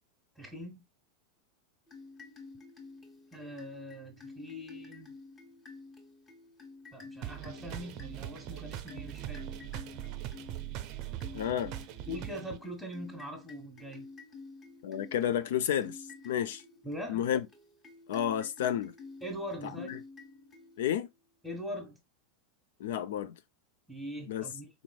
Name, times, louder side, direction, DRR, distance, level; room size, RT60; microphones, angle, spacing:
voice 1, 0.3-0.8 3.3-5.2 6.9-9.4 12.1-14.0 16.8-17.2 19.2-20.0 21.4-22.0 23.9-24.7, equal, 5° left, 1.3 m, -42 dB
sound 1, 1.9-21.1, left 3 dB, 25° left, 1.2 m, -51 dB
sound 2, 7.2-12.6, right 13 dB, 50° right, 0.5 m, -41 dB
voice 2, 11.3-11.7 14.8-16.6 17.1-17.5 18.1-18.9 19.8-20.0 20.8-21.1 22.8-23.4 24.3-24.4, left 10 dB, 75° left, 0.4 m, -31 dB
4.1 x 3.1 x 2.3 m
hypercardioid pair, 110°, 0 cm